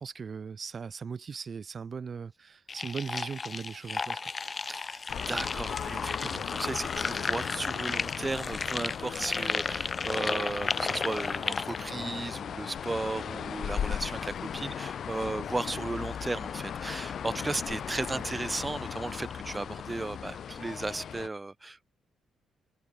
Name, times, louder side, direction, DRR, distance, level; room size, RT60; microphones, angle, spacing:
voice 1, 0.0-4.2 6.2-6.4 11.9-12.1 18.1-18.2, right 5 dB, 40° right, 1.2 m, -39 dB
sound 1, 2.7-11.8, left 4 dB, 30° left, 0.4 m, -34 dB
voice 2, 4.5-21.9, right 2 dB, 20° right, 0.6 m, -35 dB
sound 2, 5.1-21.3, left 8 dB, 60° left, 1.0 m, -37 dB
cardioid pair, 90°, 0 cm